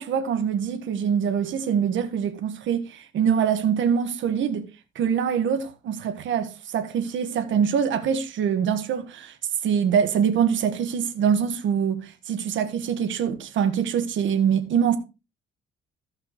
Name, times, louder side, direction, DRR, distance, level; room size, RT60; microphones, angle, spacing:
voice 1, 0.0-4.7 4.9-9.3 9.6-15.0, right 7 dB, 75° right, 1.4 m, -24 dB
15.0 x 5.7 x 3.1 m
cardioid pair, 90°, 20 cm